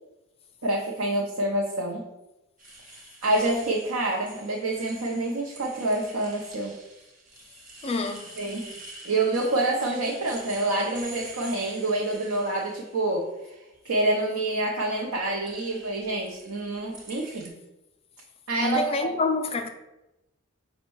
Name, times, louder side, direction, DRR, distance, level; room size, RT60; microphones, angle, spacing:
voice 1, 0.6-2.0 3.2-6.8 8.4-8.7 9.0-13.6 13.8-17.6 18.5-19.1, right 2 dB, 70° right, 0.6 m, -27 dB
sound 1, 2.6-13.2 13.7-14.3 14.9-17.5, right 2 dB, 40° right, 1.0 m, -47 dB
voice 2, 7.8-8.3 18.6-19.7, left 3 dB, 25° left, 0.3 m, -27 dB
5.2 x 2.2 x 4.5 m
head